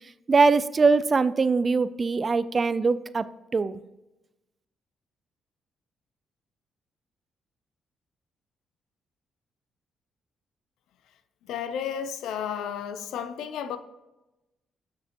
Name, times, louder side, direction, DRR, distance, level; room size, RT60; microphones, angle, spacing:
voice 1, 0.3-3.3 3.5-3.8, right 4 dB, 40° right, 0.4 m, -22 dB
voice 2, 11.5-13.8, left 8 dB, 80° left, 0.5 m, -32 dB
7.5 x 6.4 x 2.9 m
supercardioid pair, 65°, 0 cm